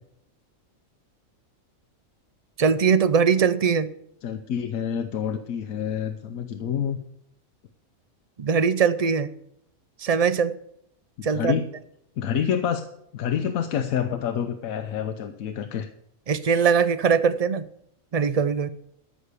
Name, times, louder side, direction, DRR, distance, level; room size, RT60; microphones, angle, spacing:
voice 1, 2.6-3.9 8.4-9.3 10.0-10.5 11.2-11.6 16.3-17.7 18.1-18.7, right 6 dB, 60° right, 13 dB, 0.4 m, -21 dB
voice 2, 4.2-7.0 11.3-11.6 12.2-12.8 13.1-15.9, left 8 dB, 85° left, 7 dB, 1.2 m, -27 dB
13.5 x 6.1 x 8.2 m, 0.74 s
omnidirectional pair, 1.4 m